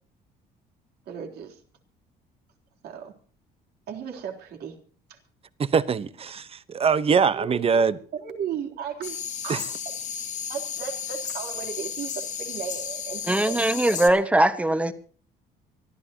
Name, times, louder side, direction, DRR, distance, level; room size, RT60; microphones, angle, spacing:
voice 1, 1.1-1.6 2.8-3.1 3.9-4.8 7.3-7.8 8.1-9.7 10.5-13.6, right 7 dB, 70° right, 3.6 m, -35 dB
voice 2, 5.6-8.0 9.5-9.6, right 6 dB, 35° right, 1.0 m, -23 dB
sound 1, 9.0-14.1, left 7 dB, 45° left, 2.1 m, -33 dB
voice 3, 13.3-14.9, right 1 dB, 10° right, 1.5 m, -21 dB
24.0 x 14.0 x 2.9 m
cardioid pair, 110°, 17 cm